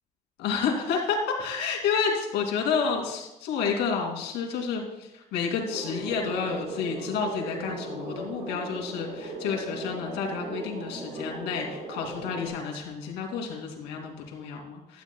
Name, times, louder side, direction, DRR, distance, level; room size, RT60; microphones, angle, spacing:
voice 1, 0.4-15.0, left 6 dB, 85° left, 0 dB, 2.7 m, -30 dB
sound 1, 5.7-12.5, right 2 dB, 75° right, 4.1 m, -37 dB
15.5 x 12.0 x 2.3 m, 0.93 s
cardioid pair, 110°, 17 cm